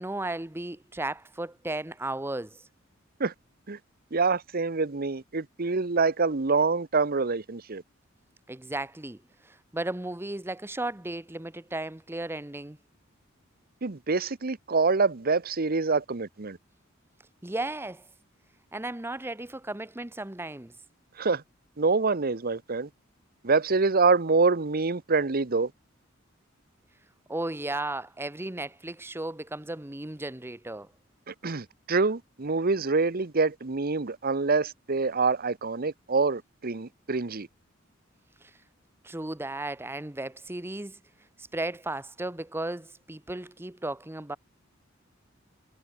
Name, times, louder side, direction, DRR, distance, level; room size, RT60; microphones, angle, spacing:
voice 1, 0.0-2.6 8.5-9.2 9.4-12.8 17.4-18.0 18.7-20.7 27.3-30.9 38.4-38.5 39.0-41.0 41.4-44.4, right 2 dB, 10° right, 0.9 m, -35 dB
voice 2, 4.1-7.8 13.8-16.6 21.2-21.4 21.8-22.9 23.4-25.7 31.3-37.5, right 4 dB, 50° right, 1.0 m, -26 dB
head